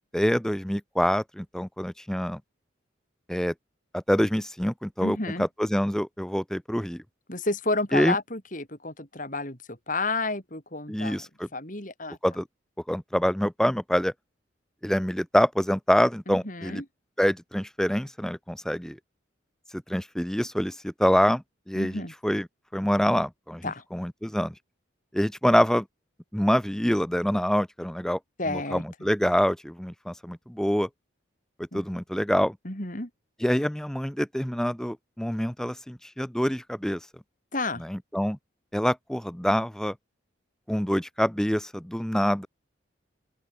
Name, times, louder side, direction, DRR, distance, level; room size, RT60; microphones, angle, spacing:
voice 1, 0.1-2.4 3.3-3.5 3.9-7.0 7.9-8.2 10.9-11.5 12.2-12.5 12.9-14.1 14.8-16.8 17.2-19.0 19.7-22.5 22.7-24.5 25.1-25.9 26.3-28.2 28.5-30.9 31.6-32.6 33.4-37.0 37.8-38.4 38.7-39.9 40.7-42.5, equal, 5° left, 0.6 m, -26 dB
voice 2, 5.0-5.5 7.3-11.2 11.5-12.2 16.3-16.8 21.8-22.1 23.6-23.8 28.4-28.8 31.7-31.8 32.6-33.1 37.5-37.8, left 2 dB, 40° left, 4.6 m, -31 dB
open air
head